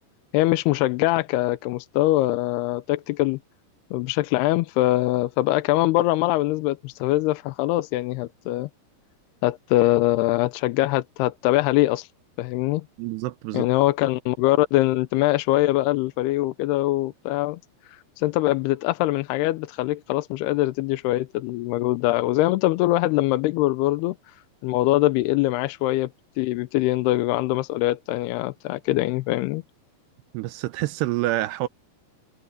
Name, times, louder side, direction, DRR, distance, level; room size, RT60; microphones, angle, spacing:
voice 1, 0.3-3.4 3.9-8.7 9.4-12.1 12.4-12.8 13.5-17.6 17.9-24.4 24.6-26.1 26.4-29.6, left 17 dB, 85° left, 2.7 m, -23 dB
voice 2, 13.0-13.7 30.3-31.7, right 16 dB, 90° right, 2.9 m, -27 dB
omnidirectional pair, 4.7 m